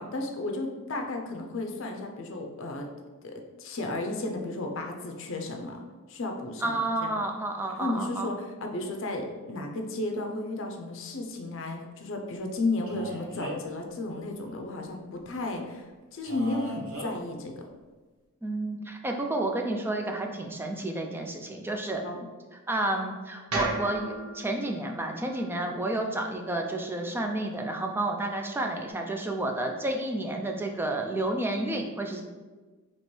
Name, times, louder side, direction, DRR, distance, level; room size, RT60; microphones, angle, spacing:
voice 1, 0.0-2.9 3.2-5.8 6.1-7.1 7.8-8.4 8.6-17.6 22.0-22.2, left 2 dB, 60° left, 3 dB, 0.5 m, -33 dB
voice 2, 6.6-8.3 18.4-22.0 22.7-32.2, right 2 dB, 10° right, 3 dB, 0.3 m, -30 dB
Male speech man speaking, 12.9-13.7 16.2-17.1, right 1 dB, 60° right, 1.2 m, -38 dB
sound 1, 23.5-27.7, right 1 dB, 80° right, 0.9 m, -37 dB
3.1 x 3.0 x 4.3 m, 1.3 s
head